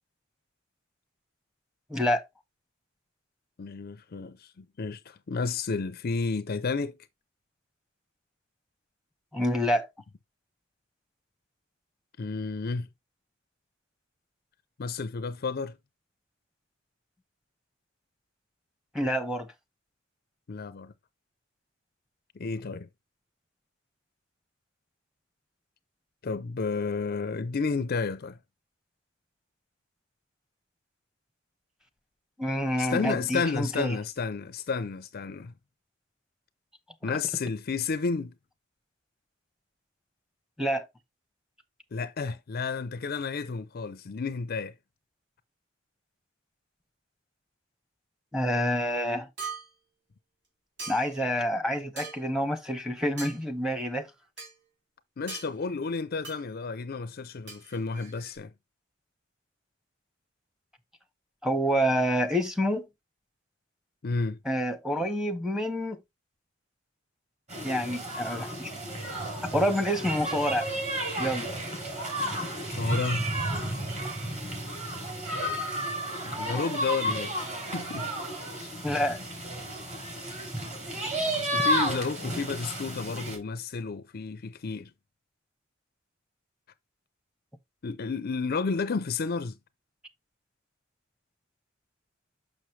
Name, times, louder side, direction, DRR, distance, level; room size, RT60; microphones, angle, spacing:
voice 1, 1.9-2.2 9.3-9.9 18.9-19.5 32.4-33.9 40.6-40.9 48.3-49.3 50.9-54.1 61.4-62.9 64.5-66.0 67.6-68.7 69.5-70.7 71.2-71.5 78.8-79.2, equal, 5° right, 1.0 m, -27 dB
voice 2, 3.6-7.0 12.2-12.9 14.8-15.8 20.5-20.9 22.3-22.9 26.2-28.4 32.8-35.5 37.0-38.4 41.9-44.7 55.2-58.5 64.0-64.4 72.7-73.3 76.3-77.4 77.7-78.1 78.5-78.7 81.3-84.9 87.8-89.6, left 4 dB, 45° left, 0.5 m, -31 dB
sound 1, 49.4-49.7 50.8-51.2 52.0-52.3 53.2-53.4 54.4-54.5 55.3-55.5 56.2-56.4 57.5-58.4, right 4 dB, 60° right, 3.4 m, -40 dB
sound 2, 67.5-83.4, right 1 dB, 35° right, 3.4 m, -32 dB
6.3 x 6.2 x 3.2 m
head